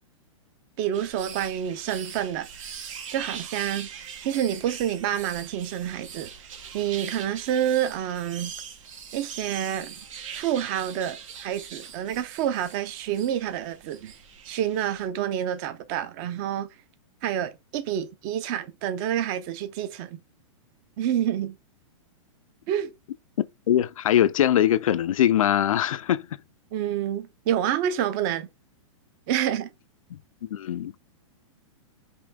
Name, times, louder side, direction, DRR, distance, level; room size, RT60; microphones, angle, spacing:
voice 1, 0.8-2.5 3.1-3.9 4.2-6.3 6.7-8.5 9.1-9.9 10.3-14.1 14.4-16.7 17.2-20.2 21.0-21.6 22.7-22.9 26.7-28.5 29.3-29.7, right 10 dB, 40° right, 0.8 m, -28 dB
sound 1, 0.9-15.1, right 7 dB, 70° right, 1.5 m, -42 dB
voice 2, 23.4-26.3 30.1-30.2 30.5-31.0, left 11 dB, 85° left, 0.5 m, -22 dB
5.3 x 2.7 x 3.6 m
hypercardioid pair, 145°, 17 cm